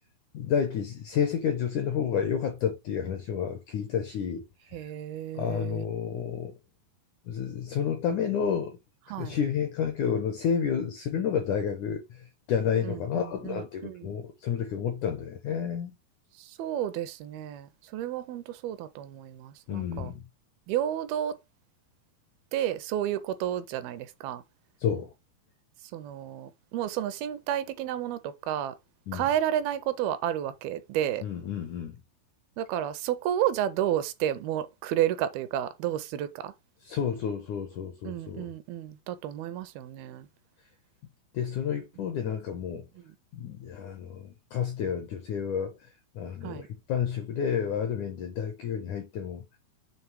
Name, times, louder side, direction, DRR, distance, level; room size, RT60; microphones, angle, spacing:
voice 1, 0.3-4.5 4.7-4.9 5.3-6.5 7.3-8.8 9.2-15.9 19.7-20.2 24.8-25.1 29.1-29.3 31.2-32.0 36.8-38.5 41.3-42.9 43.3-45.9 46.2-49.6, left 7 dB, 80° left, 1.7 m, -30 dB
voice 2, 4.7-5.9 9.1-9.4 12.8-14.1 16.4-20.1 20.7-21.4 22.5-24.4 25.9-28.8 29.1-31.2 32.6-36.5 38.0-40.3 46.4-46.7, right 11 dB, 80° right, 2.3 m, -31 dB
7.3 x 3.1 x 4.6 m
omnidirectional pair, 4.6 m